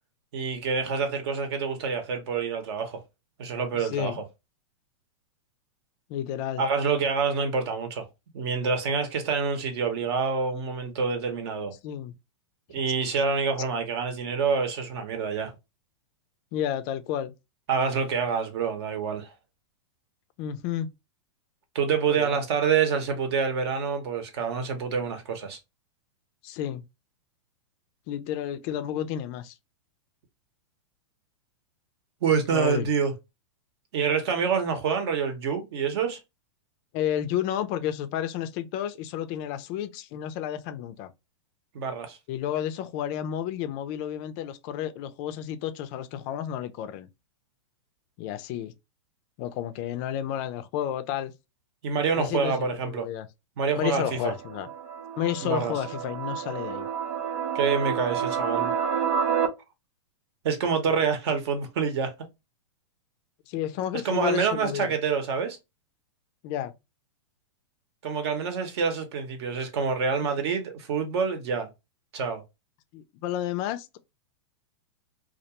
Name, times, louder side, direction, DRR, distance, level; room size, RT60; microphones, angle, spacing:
voice 1, 0.3-3.0 3.4-4.1 6.6-8.1 8.3-11.7 12.7-15.5 17.7-19.3 21.7-25.6 32.2-33.1 33.9-36.2 41.7-42.2 51.8-53.1 53.6-54.3 55.4-55.7 57.5-58.7 60.4-62.1 64.0-65.6 68.0-71.7 72.1-72.4, right 6 dB, 60° right, 0.8 m, -27 dB
voice 2, 3.7-4.2 6.1-6.6 11.8-12.2 16.5-17.3 20.4-20.9 22.1-22.4 26.4-26.9 28.1-29.6 32.5-32.9 36.9-41.1 42.3-47.1 48.2-48.7 49.4-51.3 52.2-53.3 53.8-54.7 55.2-56.9 63.5-64.9 66.4-66.7 70.4-70.5 72.9-74.0, left 10 dB, 35° left, 0.4 m, -31 dB
sound 1, 53.9-59.5, right 8 dB, 85° right, 0.6 m, -29 dB
2.3 x 2.1 x 2.8 m
hypercardioid pair, 140°, 16 cm